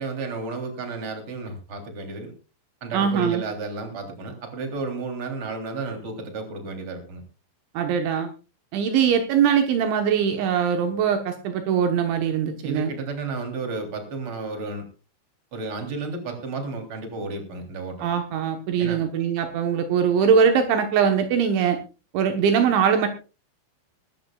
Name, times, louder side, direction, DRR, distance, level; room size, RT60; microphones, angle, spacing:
voice 1, 0.0-2.3 2.8-7.2 12.6-14.8 15.5-18.1 18.8-19.0, right 3 dB, 30° right, 4 dB, 3.6 m, -32 dB
voice 2, 2.9-3.4 7.8-8.3 8.7-12.9 18.0-21.8 22.1-23.1, right 7 dB, 75° right, 5 dB, 3.5 m, -22 dB
21.5 x 13.0 x 2.4 m, 0.32 s
omnidirectional pair, 5.6 m